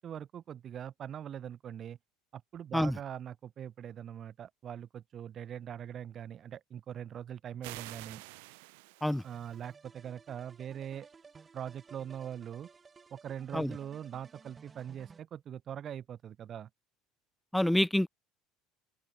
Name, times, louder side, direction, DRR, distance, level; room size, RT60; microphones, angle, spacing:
voice 1, 0.0-2.0 2.3-8.2 9.2-11.1 11.5-12.7 13.1-16.7, right 9 dB, 45° right, 1.0 m, -42 dB
sound 1, 7.6-9.7, right 26 dB, 70° right, 1.0 m, -48 dB
sound 2, 9.2-15.2, right 5 dB, 25° right, 4.6 m, -56 dB
voice 2, 17.5-18.1, left 1 dB, 5° left, 0.3 m, -27 dB
open air
hypercardioid pair, 75°, 0 cm